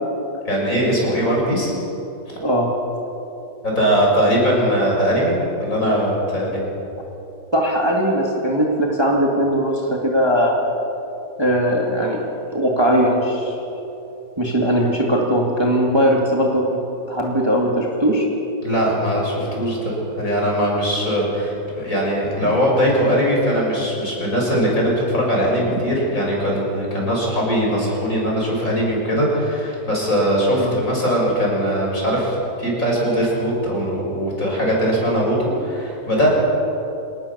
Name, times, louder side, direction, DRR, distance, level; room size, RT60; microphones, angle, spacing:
voice 1, 0.5-1.7 2.3-2.4 3.6-5.3 5.6-6.6 18.6-36.3, equal, 45° left, -2 dB, 6.9 m, -20 dB
voice 2, 7.5-10.5 11.4-13.6 14.4-16.8 17.1-18.3 22.4-22.5 30.6-30.8, equal, 15° right, -1 dB, 2.3 m, -19 dB
27.5 x 19.0 x 7.1 m, 2.9 s
omnidirectional pair, 2.0 m